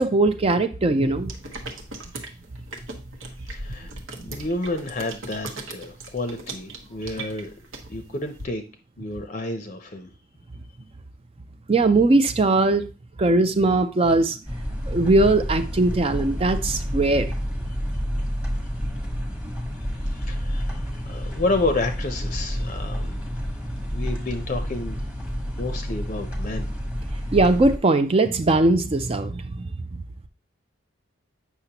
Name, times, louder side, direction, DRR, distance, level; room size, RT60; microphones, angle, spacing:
voice 1, 0.0-1.3 4.2-4.3 11.7-12.9 13.2-14.4 14.9-17.3 27.3-30.0, right 2 dB, 30° right, 9 dB, 0.4 m, -20 dB
sound 1, 1.2-8.4, right 2 dB, 80° right, 1.1 m, -38 dB
voice 2, 3.5-3.9 4.2-7.5 7.9-8.6 9.0-10.1 20.0-23.2 23.9-25.0 25.6-26.7, left 2 dB, 40° left, 6 dB, 0.6 m, -30 dB
sound 2, 14.5-27.8, equal, 5° right, 1.0 m, -29 dB
8.2 x 5.8 x 2.9 m, 0.33 s
head